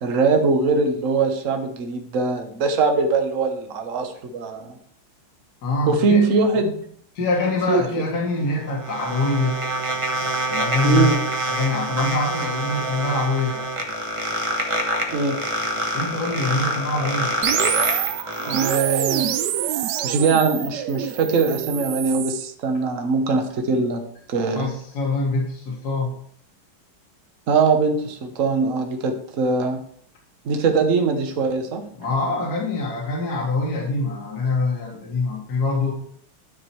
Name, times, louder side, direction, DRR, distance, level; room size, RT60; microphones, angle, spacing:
voice 1, 0.0-4.8 5.9-6.8 7.7-8.1 10.8-11.2 15.1-15.4 18.5-19.3 20.0-24.0 24.3-24.7 27.5-29.8 30.4-31.9, right 4 dB, 45° right, 5 dB, 1.2 m, -21 dB
voice 2, 5.6-6.2 7.2-9.6 10.5-11.1 11.5-13.6 15.9-17.3 24.5-26.1 32.0-35.9, left 3 dB, 50° left, -1 dB, 2.1 m, -24 dB
sound 1, 8.3-18.8, right 1 dB, 20° right, 0.8 m, -26 dB
sound 2, 17.4-22.5, right 11 dB, 75° right, 1.0 m, -26 dB
10.0 x 4.7 x 4.6 m, 0.62 s
omnidirectional pair, 2.3 m